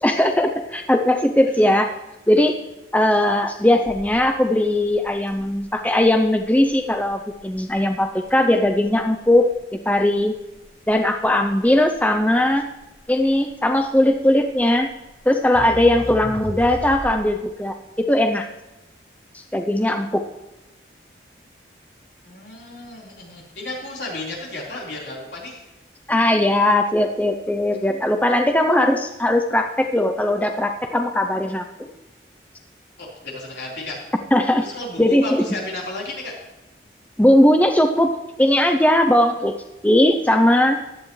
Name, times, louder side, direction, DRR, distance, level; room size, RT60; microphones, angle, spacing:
voice 1, 0.0-1.9 2.3-2.6 2.9-9.5 9.9-10.3 10.9-12.7 13.1-14.9 15.3-17.8 18.1-18.5 19.3-20.2 26.1-31.9 34.3-34.7 35.0-35.4 37.2-38.1 38.4-39.5 39.8-40.8, left 1 dB, 10° left, 5 dB, 0.5 m, -19 dB
voice 2, 1.4-1.8 22.2-25.6 33.0-34.0 34.6-36.3, left 2 dB, 75° left, -4 dB, 4.0 m, -33 dB
Crackle, 3.8-17.4, equal, 20° right, 4.9 m, -38 dB
15.5 x 11.0 x 3.2 m, 1.0 s
head